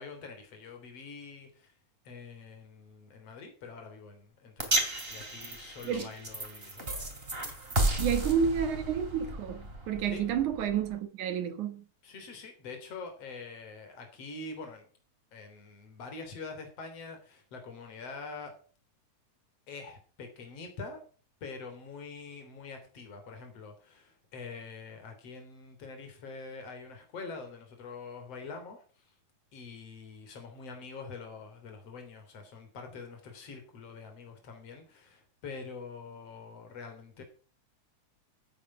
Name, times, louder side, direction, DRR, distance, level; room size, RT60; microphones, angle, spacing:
voice 1, 0.0-1.8 2.0-7.1 10.1-10.2 12.0-14.9 15.3-18.5 19.7-21.0 21.4-29.1 29.5-37.2, left 4 dB, 55° left, 4.4 m, -45 dB
sound 1, 4.6-11.0, right 2 dB, 20° right, 2.9 m, -33 dB
voice 2, 8.0-11.8, right 7 dB, 90° right, 3.1 m, -30 dB
15.0 x 9.4 x 6.1 m
omnidirectional pair, 3.3 m